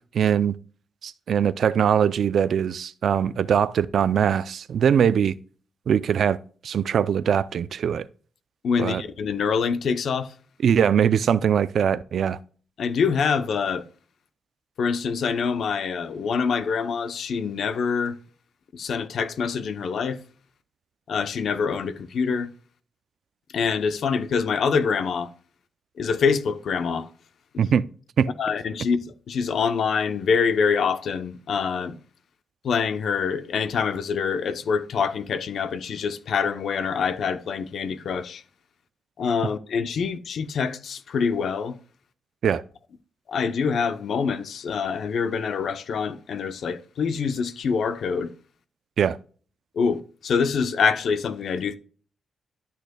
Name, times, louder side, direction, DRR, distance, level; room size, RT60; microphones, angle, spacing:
voice 1, 0.1-0.5 1.0-5.4 5.9-6.4 6.6-8.1 8.8-9.0 10.6-12.4 27.6-27.8 28.2-28.3 42.4-42.6 49.0-49.2, right 8 dB, 65° right, 0.4 m, -21 dB
voice 2, 8.6-10.3 12.8-13.9 14.8-18.2 18.7-20.2 21.1-22.5 23.5-25.3 26.0-27.1 27.5-27.7 28.4-32.0 32.6-38.4 39.2-41.8 43.3-48.3 49.8-51.8, left 6 dB, 70° left, 0.8 m, -25 dB
12.0 x 6.5 x 2.3 m
cardioid pair, 105°, 0 cm